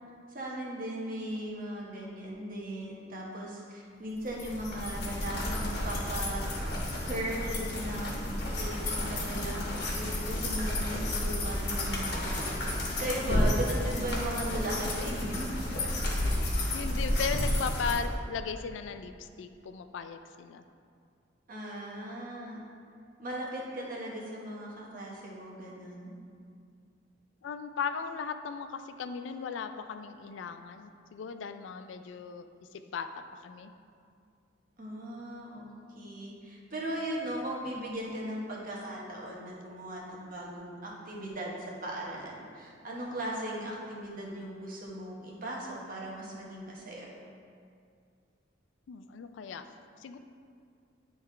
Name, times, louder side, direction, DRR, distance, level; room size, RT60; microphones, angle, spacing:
voice 1, 0.3-6.5 7.1-12.4 13.0-15.5 21.5-22.6 23.2-26.1 34.8-47.1, right 1 dB, 50° right, -3 dB, 1.1 m, -38 dB
sound 1, 4.3-17.9, left 1 dB, 60° left, 1.2 m, -31 dB
voice 2, 16.7-20.6 27.4-32.5 32.7-33.7 48.9-49.6 50.0-50.2, left 6 dB, 80° left, 9 dB, 0.3 m, -37 dB
9.2 x 3.5 x 3.2 m, 2.3 s
head